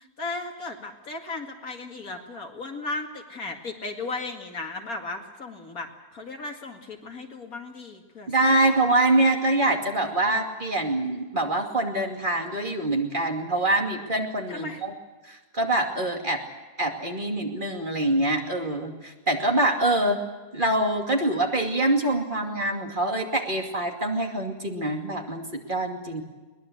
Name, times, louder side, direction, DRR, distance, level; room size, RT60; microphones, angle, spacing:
voice 1, 0.2-5.9 6.1-8.3 8.6-8.8 14.5-14.8, left 3 dB, 60° left, 3 dB, 2.7 m, -35 dB
voice 2, 8.3-14.9 15.2-16.4 16.8-20.2 20.5-26.2, right 1 dB, 30° right, 2 dB, 2.7 m, -25 dB
22.5 x 20.5 x 8.0 m, 1.2 s
omnidirectional pair, 1.7 m